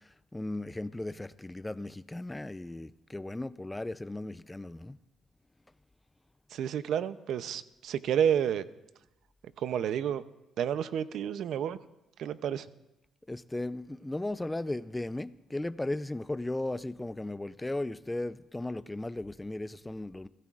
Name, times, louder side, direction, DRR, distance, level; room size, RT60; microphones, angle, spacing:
voice 1, 0.3-5.0 13.3-20.3, left 2 dB, 10° left, 0.4 m, -36 dB
voice 2, 6.5-8.7 9.6-10.2 10.6-11.8 12.2-12.7, right 9 dB, 75° right, 0.6 m, -30 dB
22.5 x 16.5 x 2.4 m
cardioid pair, 90°, 0 cm